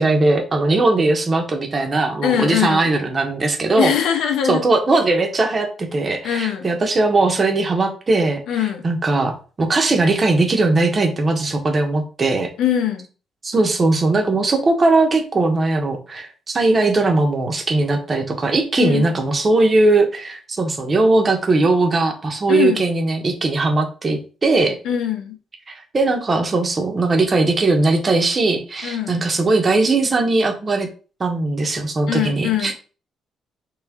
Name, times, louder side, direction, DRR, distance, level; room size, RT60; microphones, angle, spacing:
voice 1, 0.0-3.9 4.4-12.5 13.4-24.7 25.7-30.9 31.2-32.7, right 2 dB, 20° right, 0.8 m, -19 dB
voice 2, 2.2-2.9 3.8-4.6 6.2-6.7 8.5-8.9 12.6-13.1 18.8-19.1 22.5-22.8 24.8-25.4 28.8-29.2 32.1-32.7, left 9 dB, 85° left, 0.9 m, -22 dB
3.5 x 3.2 x 4.7 m
cardioid pair, 180°, 0 cm